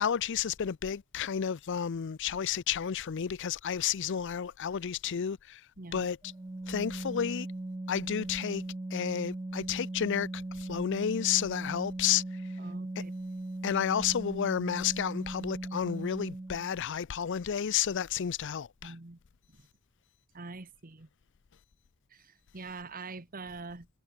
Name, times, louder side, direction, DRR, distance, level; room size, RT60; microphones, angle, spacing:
voice 1, 0.0-5.6 5.9-6.2 6.7-7.5 7.9-8.6 8.9-12.4 13.6-18.9, left 8 dB, 55° left, 0.5 m, -31 dB
voice 2, 5.8-6.1 12.6-13.1 18.8-19.2 20.3-21.1 22.1-23.9, right 3 dB, 40° right, 1.3 m, -44 dB
Organ, 6.2-16.8, right 2 dB, 15° right, 0.4 m, -39 dB
head